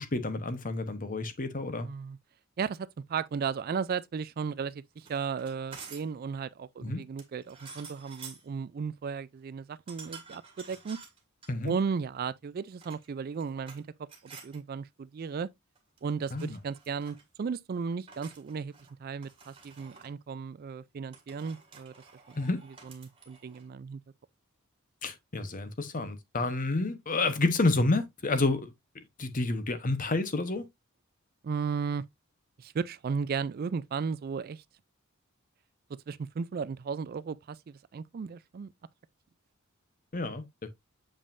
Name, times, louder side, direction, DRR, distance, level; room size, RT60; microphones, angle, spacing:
voice 1, 0.0-1.9 6.8-7.0 11.5-11.7 16.3-16.6 22.3-22.6 25.0-30.6 40.1-40.7, left 2 dB, 40° left, 0.9 m, -30 dB
voice 2, 1.8-2.2 2.6-11.0 11.6-14.1 14.4-15.5 16.0-18.7 19.0-21.9 22.8-24.0 31.4-32.0 32.6-34.6 36.1-38.7, right 5 dB, 45° right, 0.3 m, -35 dB
sound 1, 5.0-6.2 7.2-8.5 9.9-11.5 12.6-13.8 14.1-14.6 15.8-16.1 16.4-17.3 18.1-18.9 19.2-20.1 21.1-23.7, right 5 dB, 25° right, 1.7 m, -50 dB
7.2 x 5.2 x 2.5 m
head